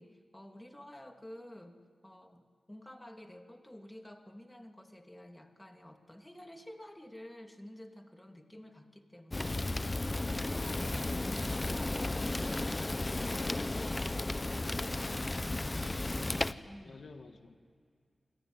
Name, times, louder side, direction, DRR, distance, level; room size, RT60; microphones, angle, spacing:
voice 1, 0.0-13.4 13.7-17.1, left 1 dB, 10° left, 4 dB, 2.8 m, -52 dB
Fire, 9.3-16.5, left 2 dB, 30° left, 1.0 m, -34 dB
voice 2, 14.4-14.8 15.2-15.5 16.8-17.6, left 4 dB, 70° left, 6 dB, 1.9 m, -53 dB
27.5 x 20.0 x 9.6 m, 2.2 s
cardioid pair, 60°, 0 cm